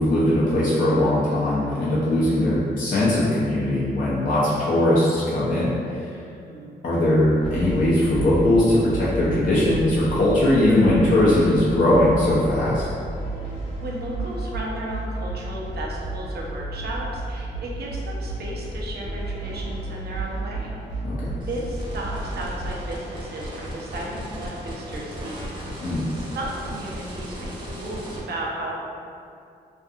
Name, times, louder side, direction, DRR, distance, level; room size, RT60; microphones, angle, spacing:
voice 1, 0.0-5.8 6.0-6.1 6.8-12.8 21.0-21.4 25.8-26.1, left 1 dB, 50° left, -8 dB, 0.6 m, -20 dB
voice 2, 6.3-6.8 13.3-13.5 13.8-20.7 21.5-28.7, right 1 dB, 60° right, -3 dB, 0.6 m, -34 dB
sound 1, 7.4-22.7, right 2 dB, 90° left, 1.0 m, -32 dB
sound 2, 21.4-28.2, equal, 25° right, 0.7 m, -36 dB
2.5 x 2.3 x 2.7 m, 2.5 s
cardioid pair, 65°, 18 cm